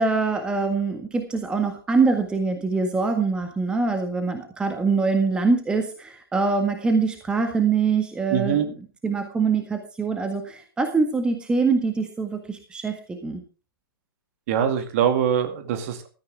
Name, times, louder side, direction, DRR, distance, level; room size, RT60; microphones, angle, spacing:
voice 1, 0.0-8.7 9.0-13.4, right 4 dB, 5° right, 5 dB, 1.6 m, -24 dB
voice 2, 8.3-8.7 14.5-16.1, right 9 dB, 35° right, 8 dB, 2.3 m, -23 dB
15.5 x 14.0 x 3.5 m, 0.34 s
figure-of-eight pair, 125°, 12 cm